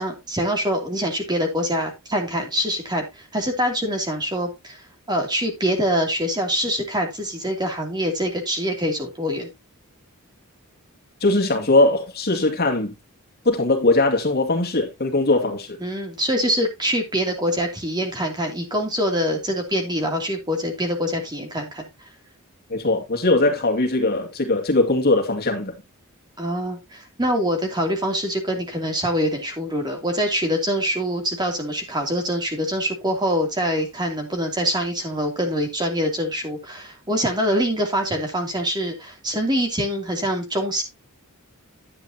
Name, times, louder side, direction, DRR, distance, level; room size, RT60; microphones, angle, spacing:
voice 1, 0.0-9.5 15.8-21.8 26.4-40.8, equal, 20° right, 2.8 m, -24 dB
voice 2, 11.2-12.9 13.4-15.7 22.7-25.7, left 2 dB, 45° left, 2.4 m, -20 dB
11.0 x 8.8 x 2.9 m
head